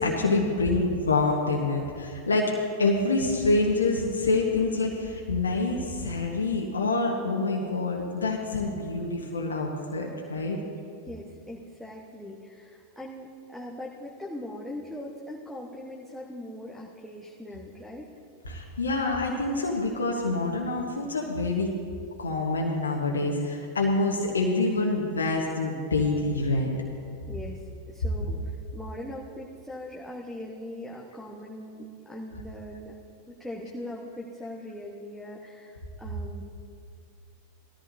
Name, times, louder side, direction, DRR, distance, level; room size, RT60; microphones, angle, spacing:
voice 1, 0.0-2.5 2.8-10.6 18.5-21.7 22.2-26.7, left 3 dB, 75° left, -1 dB, 1.2 m, -26 dB
voice 2, 11.0-18.1 27.3-33.0 33.3-36.4, left 1 dB, ahead, -5 dB, 1.2 m, -40 dB
19.0 x 13.5 x 2.7 m, 2.3 s
figure-of-eight pair, 90°, 0 cm